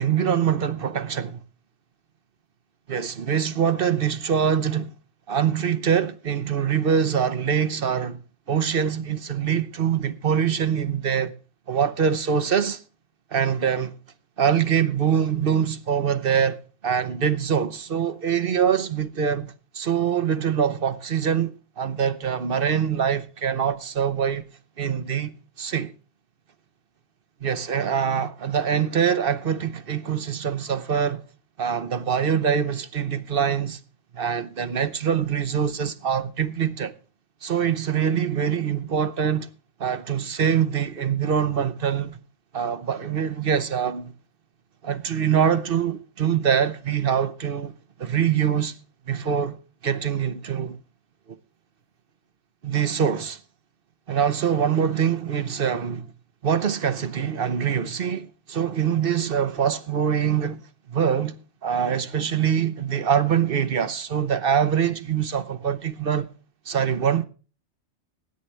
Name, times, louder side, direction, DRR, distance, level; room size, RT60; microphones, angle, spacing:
voice 1, 0.0-1.4 2.9-4.9 5.3-8.2 8.5-11.3 11.7-12.8 13.3-14.0 14.4-16.6 16.8-24.5 24.8-25.3 25.6-25.9 27.4-31.2 31.6-33.8 34.1-36.9 37.4-39.5 39.8-42.2 42.5-44.1 44.8-47.7 48.0-48.7 49.1-49.6 49.8-50.8 51.3-51.4 52.6-53.4 54.1-56.1 56.4-60.6 60.9-66.3 66.7-67.3, right 8 dB, 55° right, 1.0 m, -24 dB
19.5 x 9.7 x 3.3 m
omnidirectional pair, 1.2 m